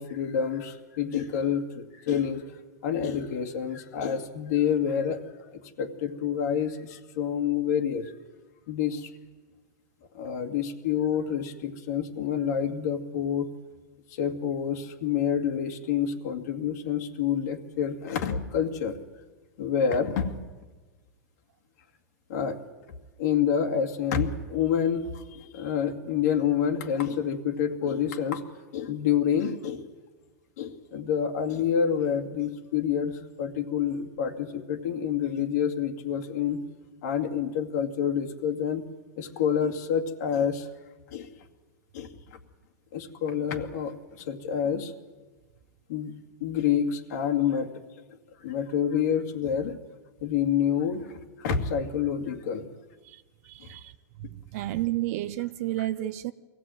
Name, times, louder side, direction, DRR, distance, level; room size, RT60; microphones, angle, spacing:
voice 1, 0.0-2.4 2.8-5.2 5.5-8.1 8.7-9.1 10.1-13.5 14.2-19.0 19.6-20.4 22.3-22.6 23.2-28.4 28.7-29.9 30.6-36.6 37.0-38.8 39.2-40.7 41.1-41.3 41.9-42.4 42.9-44.9 45.9-46.1 46.4-47.7 48.4-49.8 50.2-52.7 53.6-53.7, left 8 dB, 70° left, 2.2 m, -28 dB
voice 2, 53.0-53.9 54.2-56.3, right 16 dB, 55° right, 0.7 m, -32 dB
23.0 x 16.5 x 9.2 m
supercardioid pair, 150°, 10 cm